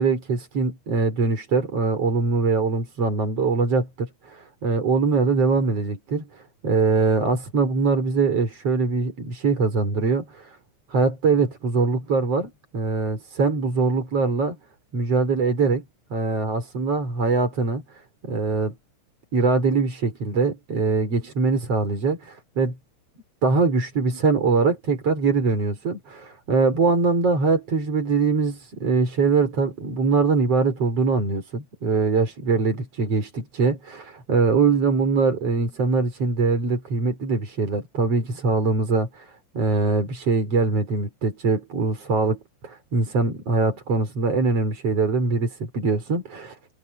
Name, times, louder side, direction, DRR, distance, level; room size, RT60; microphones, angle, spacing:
voice 1, 0.0-10.6 10.9-14.6 14.9-15.8 16.1-17.8 18.2-18.7 19.3-22.8 23.4-28.5 28.8-46.6, right 4 dB, 30° right, 5.6 m, -22 dB
omnidirectional pair, 5.7 m